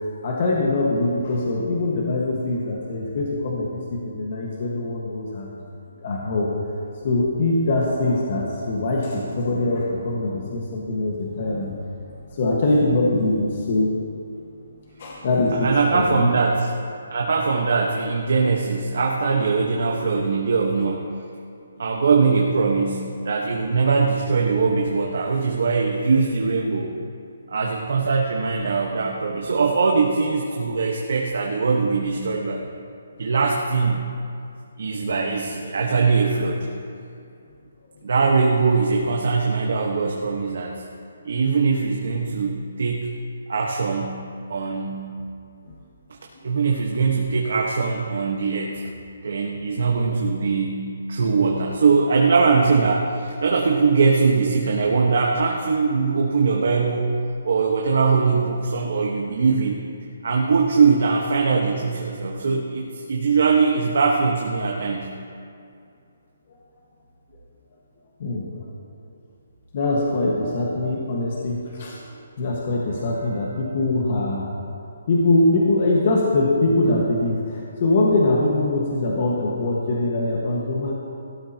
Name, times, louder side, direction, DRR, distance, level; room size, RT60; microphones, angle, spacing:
voice 1, 0.0-5.6 6.0-6.5 7.0-11.7 12.3-13.9 15.0-16.3 45.7-45.8 68.2-68.5 69.7-72.0 72.4-74.5 75.1-80.9, left 2 dB, 35° left, -3 dB, 1.5 m, -22 dB
voice 2, 15.5-16.7 17.1-21.1 21.8-26.9 27.5-32.6 33.2-34.1 34.8-36.7 38.0-40.8 41.2-43.1 43.5-44.2 44.5-45.1 46.4-48.8 49.2-57.1 57.4-59.8 60.2-65.1, right 4 dB, 60° right, 0 dB, 1.3 m, -21 dB
17.5 x 13.0 x 3.0 m, 2.5 s
hypercardioid pair, 175°, 0 cm